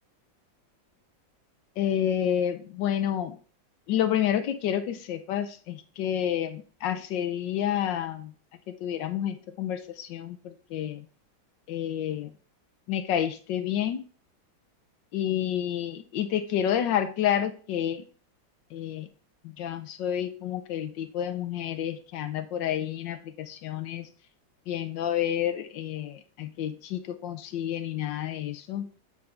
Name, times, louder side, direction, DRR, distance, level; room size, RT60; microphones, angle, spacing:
voice 1, 1.8-3.4 3.9-8.3 8.7-11.1 11.7-12.3 12.9-14.0 15.1-18.0 18.7-19.1 19.4-24.1 24.7-28.9, left 10 dB, 75° left, 10 dB, 1.3 m, -29 dB
8.3 x 3.4 x 5.1 m, 0.39 s
omnidirectional pair, 2.1 m